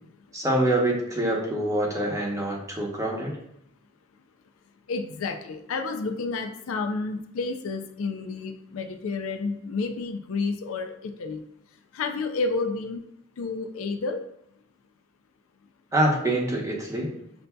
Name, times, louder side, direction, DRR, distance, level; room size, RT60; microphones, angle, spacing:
voice 1, 0.3-3.4 15.9-17.1, right 1 dB, 15° right, -2 dB, 0.8 m, -25 dB
voice 2, 4.9-11.4 11.9-13.1 13.4-14.3, left 3 dB, 75° left, 7 dB, 0.4 m, -30 dB
6.7 x 2.6 x 2.2 m, 0.76 s
head